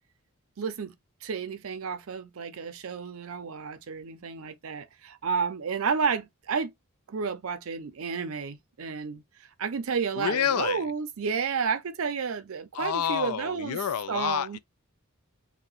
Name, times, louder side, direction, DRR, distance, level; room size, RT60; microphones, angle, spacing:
voice 1, 0.6-0.9 1.2-6.7 7.1-9.2 9.6-13.8 14.1-14.6, right 5 dB, 70° right, 0.5 m, -31 dB
voice 2, 10.2-10.8 12.8-14.6, left 8 dB, 85° left, 0.4 m, -28 dB
2.8 x 2.2 x 3.8 m
head